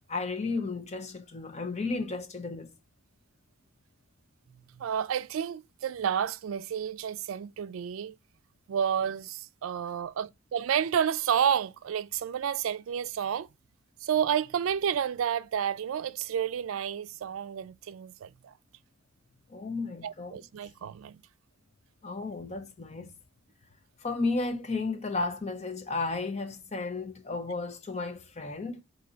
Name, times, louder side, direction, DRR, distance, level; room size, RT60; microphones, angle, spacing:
voice 1, 0.1-2.7 19.5-20.4 22.0-23.1 24.0-28.8, left 3 dB, 35° left, 0.7 m, -33 dB
voice 2, 4.8-8.2 8.7-13.5 14.0-18.5 20.0-21.2, right 8 dB, 85° right, 0.4 m, -30 dB
4.3 x 2.8 x 3.8 m
head